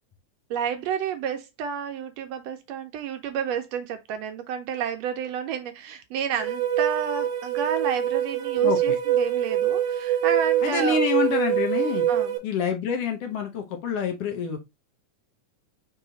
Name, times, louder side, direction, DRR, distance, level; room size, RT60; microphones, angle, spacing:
voice 1, 0.5-11.0 12.1-12.4, right 7 dB, 80° right, 1.5 m, -30 dB
sound 1, 6.4-12.4, right 10 dB, 65° right, 1.3 m, -24 dB
voice 2, 8.6-9.0 10.6-12.0 12.4-14.6, left 6 dB, 65° left, 1.6 m, -27 dB
4.8 x 2.9 x 3.8 m
omnidirectional pair, 3.4 m